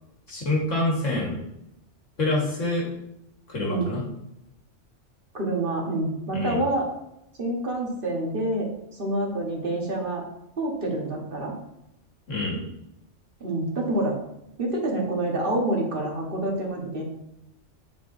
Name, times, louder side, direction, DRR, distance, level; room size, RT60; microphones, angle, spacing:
voice 1, 0.3-1.4 2.2-2.9 3.5-4.0 6.3-6.6 12.3-12.6, left 2 dB, 90° left, -2 dB, 2.0 m, -26 dB
voice 2, 5.3-6.9 7.4-8.7 9.0-10.2 10.6-11.5 13.4-14.2 14.6-17.0, right 1 dB, 50° right, -1 dB, 1.5 m, -27 dB
8.9 x 4.9 x 2.6 m, 0.84 s
omnidirectional pair, 1.3 m